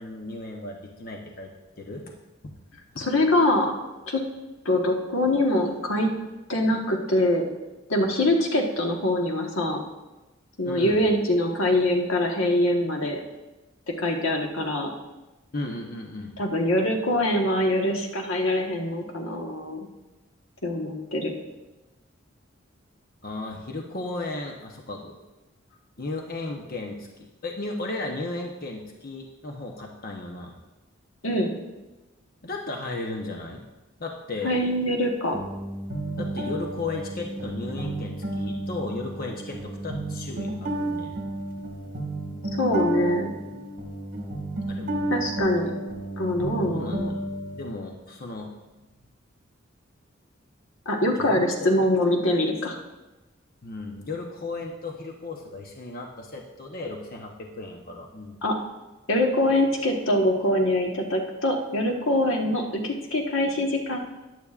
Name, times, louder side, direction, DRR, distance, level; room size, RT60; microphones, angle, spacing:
voice 1, 0.0-1.5 1.8-2.1 2.4-2.5 2.9-3.1 10.6-11.0 15.5-16.3 23.2-25.1 26.0-30.5 32.4-33.6 34.0-34.5 36.2-41.2 44.7-45.1 46.4-47.3 47.5-48.5 51.2-51.7 53.6-58.4, left 2 dB, 50° left, 1 dB, 0.9 m, -35 dB
voice 2, 3.0-3.7 4.1-4.2 4.6-6.1 6.5-7.4 7.9-9.8 10.6-13.2 14.0-14.9 16.4-19.8 20.6-21.3 31.2-31.5 34.4-35.4 42.6-43.3 45.1-45.7 46.2-47.1 50.8-52.8 58.4-58.6 59.1-64.0, left 1 dB, 85° left, 1 dB, 1.4 m, -24 dB
sound 1, 35.3-47.7, right 2 dB, 45° right, 1.7 m, -32 dB
14.0 x 10.5 x 2.5 m, 1.1 s
head